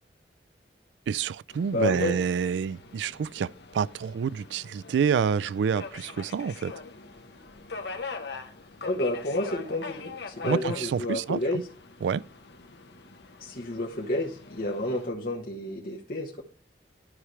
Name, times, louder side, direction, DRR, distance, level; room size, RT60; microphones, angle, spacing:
voice 1, 1.1-6.7 10.4-11.6 12.0-12.2, right 7 dB, 85° right, 0.3 m, -28 dB
Subway metro underground, 1.5-15.1, left 4 dB, 70° left, 0.9 m, -43 dB
voice 2, 1.7-2.2 8.8-11.6 13.4-16.4, left 1 dB, 50° left, 1.2 m, -30 dB
12.5 x 4.8 x 3.2 m
head